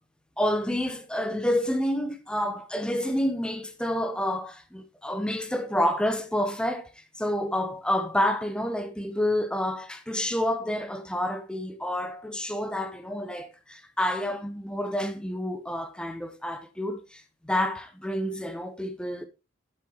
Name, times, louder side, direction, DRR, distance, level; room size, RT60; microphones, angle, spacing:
voice 1, 0.4-19.3, left 1 dB, 5° left, 0.6 m, -29 dB
9.2 x 7.6 x 2.8 m
head